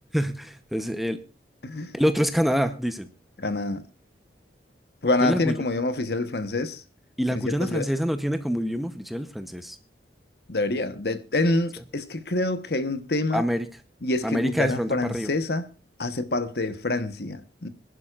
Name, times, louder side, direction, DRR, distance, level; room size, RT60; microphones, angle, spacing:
voice 1, 0.1-1.2 1.9-3.1 5.2-5.5 7.2-9.8 13.3-13.7 14.2-15.3, equal, ahead, 0.9 m, -26 dB
voice 2, 1.6-1.9 3.4-3.8 5.0-6.8 7.3-7.9 10.5-13.4 14.0-15.7 16.0-17.7, left 2 dB, 60° left, 1.2 m, -27 dB
25.5 x 11.5 x 2.5 m
head